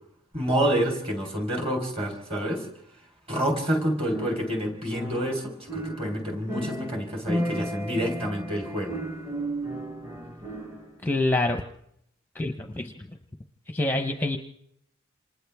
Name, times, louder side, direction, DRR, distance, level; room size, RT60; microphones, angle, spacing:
voice 1, 0.3-2.7 3.3-9.0, equal, 25° right, 2 dB, 3.9 m, -28 dB
sound 1, 4.1-11.0, right 1 dB, 10° right, 1.1 m, -34 dB
voice 2, 11.0-11.6 12.3-13.1 13.7-14.4, left 2 dB, 10° left, 5 dB, 0.8 m, -26 dB
28.5 x 26.5 x 3.5 m, 0.73 s
head